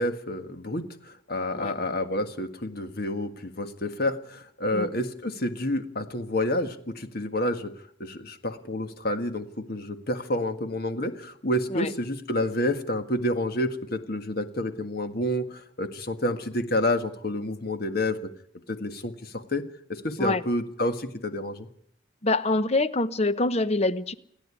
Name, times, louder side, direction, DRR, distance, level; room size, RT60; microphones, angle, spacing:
voice 1, 0.0-7.7 8.0-18.2 18.7-19.6 19.9-21.7, left 1 dB, 50° left, 8 dB, 1.7 m, -29 dB
voice 2, 22.2-24.1, left 2 dB, 30° left, 14 dB, 0.9 m, -25 dB
29.0 x 10.5 x 9.8 m, 0.68 s
head